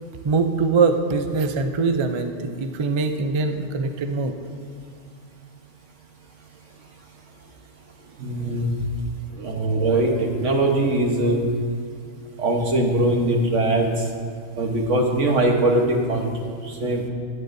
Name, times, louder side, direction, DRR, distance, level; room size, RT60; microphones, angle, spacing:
voice 1, 0.2-4.4, right 4 dB, 50° right, 7 dB, 0.3 m, -22 dB
voice 2, 8.2-8.7 9.3-11.4 12.4-14.0 14.6-16.3 16.6-17.0, right 2 dB, 75° right, 1 dB, 1.5 m, -21 dB
17.5 x 8.2 x 2.6 m, 2.1 s
omnidirectional pair, 1.3 m